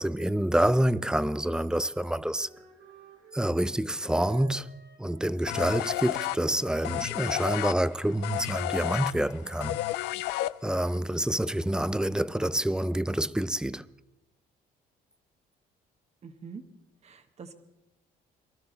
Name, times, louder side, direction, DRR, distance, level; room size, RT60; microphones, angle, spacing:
voice 1, 0.0-2.5 3.3-4.7 5.0-9.8 10.6-13.9, right 1 dB, 5° right, 0.4 m, -27 dB
Wind instrument woodwind instrument, 2.3-9.3, right 4 dB, 85° right, 5.9 m, -52 dB
sound 1, 5.5-11.0, left 17 dB, 90° left, 0.4 m, -32 dB
voice 2, 16.2-16.6 17.0-17.5, right 5 dB, 40° right, 1.4 m, -44 dB
23.5 x 13.0 x 4.0 m
cardioid pair, 110°, 17 cm